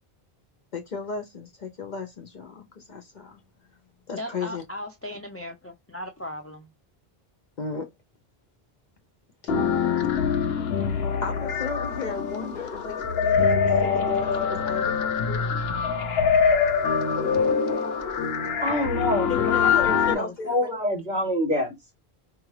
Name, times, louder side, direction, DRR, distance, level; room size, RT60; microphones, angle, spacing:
voice 1, 0.7-3.4 4.1-4.6 7.6-7.9 11.2-15.4 19.3-20.7, left 4 dB, 50° left, 0.7 m, -35 dB
voice 2, 4.2-6.7, left 1 dB, 20° left, 0.4 m, -37 dB
sound 1, 9.5-20.1, left 6 dB, 75° left, 0.9 m, -24 dB
voice 3, 18.6-21.7, left 1 dB, 50° right, 2.1 m, -27 dB
4.6 x 2.4 x 3.2 m
omnidirectional pair, 1.0 m